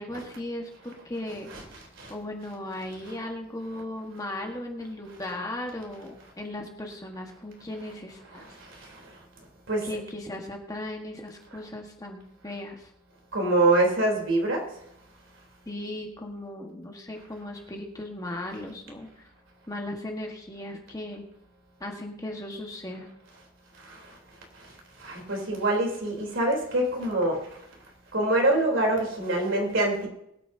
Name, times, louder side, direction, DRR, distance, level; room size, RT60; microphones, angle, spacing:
voice 1, 0.0-1.5 2.1-8.5 9.8-12.9 15.7-19.1 19.7-21.2 21.8-23.1, left 1 dB, 15° left, 1 dB, 1.4 m, -37 dB
voice 2, 1.5-2.1 3.1-3.2 8.3-9.1 9.7-9.9 13.3-14.6 23.8-24.0 25.0-27.6 28.1-30.1, right 2 dB, 65° right, 0 dB, 3.5 m, -25 dB
22.0 x 9.0 x 2.8 m, 0.79 s
head